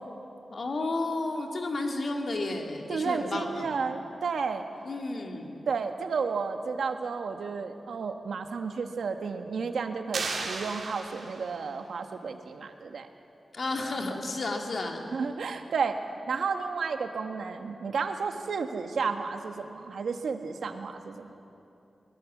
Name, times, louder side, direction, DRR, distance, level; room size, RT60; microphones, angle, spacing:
voice 1, 0.5-3.8 4.8-5.5 13.5-15.1, left 2 dB, 50° left, 2 dB, 2.3 m, -32 dB
voice 2, 2.9-4.6 5.7-13.1 15.1-16.0 16.3-21.3, right 5 dB, 90° right, 6 dB, 1.5 m, -32 dB
sound 1, 10.1-11.7, right 4 dB, 75° right, 2.8 m, -35 dB
23.5 x 21.0 x 7.4 m, 2.8 s
wide cardioid pair, 180°, 0 cm